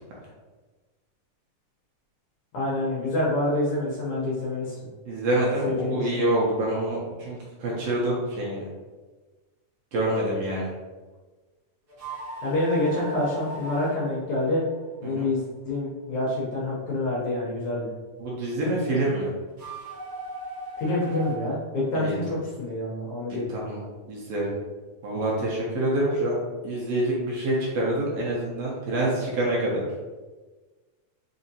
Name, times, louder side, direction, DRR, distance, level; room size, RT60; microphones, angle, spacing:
voice 1, 2.5-4.8 5.6-6.3 12.4-14.6 15.0-17.9 20.8-22.2 22.6-23.6, left 1 dB, 85° left, -6 dB, 1.2 m, -27 dB
voice 2, 5.1-8.6 9.9-10.7 15.0-15.3 18.2-19.3 21.9-22.1 23.3-23.8 24.1-24.5 25.0-29.8, right 1 dB, 75° right, -5 dB, 1.4 m, -26 dB
sound 1, 11.9-15.2 19.5-21.6, right 2 dB, 55° right, 1.0 m, -38 dB
4.9 x 2.6 x 2.7 m, 1.3 s
omnidirectional pair, 3.7 m